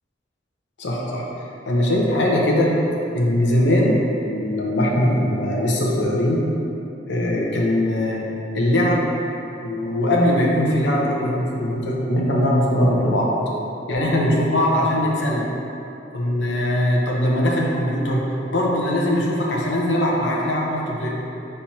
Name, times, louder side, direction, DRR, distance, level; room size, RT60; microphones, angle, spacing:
voice 1, 0.8-1.3 1.7-2.7 3.1-4.0 4.3-6.4 7.1-8.2 8.5-9.0 9.6-13.3 13.9-15.5 16.1-21.2, left 1 dB, 75° left, -3 dB, 0.7 m, -20 dB
5.8 x 3.3 x 2.8 m, 2.9 s
head